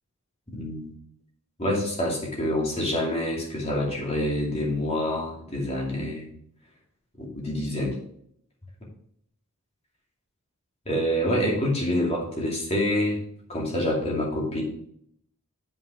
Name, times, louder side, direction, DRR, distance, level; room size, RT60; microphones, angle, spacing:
voice 1, 0.5-0.9 1.6-6.3 7.2-8.0 10.9-13.2 13.5-14.6, left 1 dB, 30° left, -2 dB, 2.6 m, -27 dB
7.4 x 5.7 x 4.9 m, 0.68 s
head